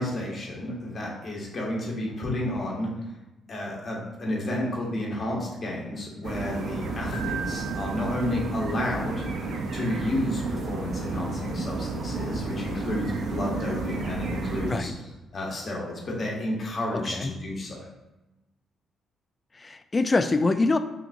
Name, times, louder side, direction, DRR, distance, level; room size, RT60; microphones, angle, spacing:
voice 1, 0.0-2.9 3.5-9.2 9.7-14.9 15.3-17.8, left 1 dB, 45° left, -3 dB, 1.2 m, -31 dB
sound 1, 6.2-14.8, right 3 dB, 65° right, 0.6 m, -31 dB
Keyboard (musical), 7.1-8.9, right 7 dB, 65° left, 0.9 m, -38 dB
voice 2, 19.6-20.8, left 3 dB, 25° left, 10 dB, 0.3 m, -24 dB
5.6 x 2.6 x 2.6 m, 1.0 s
cardioid pair, 90°, 0 cm